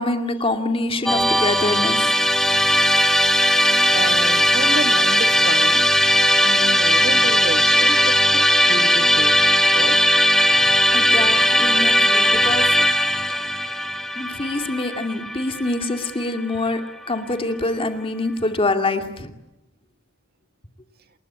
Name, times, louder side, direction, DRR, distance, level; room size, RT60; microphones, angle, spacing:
voice 1, 0.0-2.1 10.9-12.9 14.2-16.8 17.1-19.3, left 2 dB, 25° left, 6 dB, 2.4 m, -25 dB
Musical instrument, 1.1-16.2, equal, ahead, 1.6 m, -18 dB
voice 2, 3.9-5.8 6.4-9.4 9.7-10.0, right 2 dB, 50° right, 8 dB, 1.9 m, -30 dB
29.0 x 20.5 x 9.9 m, 0.91 s
head